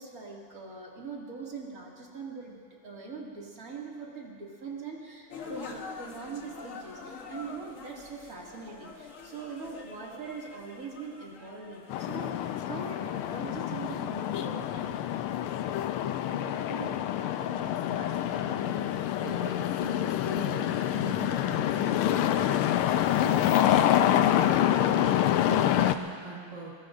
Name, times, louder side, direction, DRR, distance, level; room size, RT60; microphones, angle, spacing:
voice 1, 0.0-15.0, right 4 dB, 40° right, -3 dB, 2.8 m, -42 dB
sound 1, 5.3-12.8, left 4 dB, 45° left, 1.3 m, -45 dB
sound 2, 11.9-25.9, left 11 dB, 85° left, 1.5 m, -27 dB
voice 2, 16.3-17.1 17.4-26.7, right 2 dB, 20° right, -6 dB, 1.9 m, -42 dB
22.5 x 22.5 x 2.6 m, 2.1 s
omnidirectional pair, 2.4 m